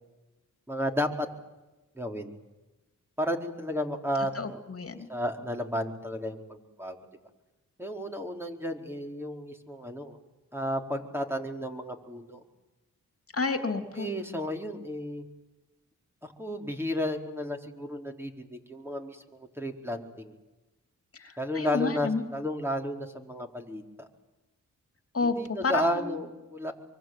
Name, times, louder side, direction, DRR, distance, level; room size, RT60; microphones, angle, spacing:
voice 1, 0.7-1.3 1.9-2.3 3.2-4.6 5.1-7.0 7.8-10.2 10.5-12.4 14.0-15.3 16.2-19.2 19.6-20.3 21.4-24.1 25.2-26.7, equal, 5° right, 3 dB, 4.4 m, -33 dB
voice 2, 4.3-5.0 13.3-14.1 21.2-22.2 25.1-25.4 25.6-26.1, left 4 dB, 45° left, 7 dB, 3.0 m, -30 dB
24.5 x 24.5 x 9.3 m, 1.1 s
cardioid pair, 70°, 33 cm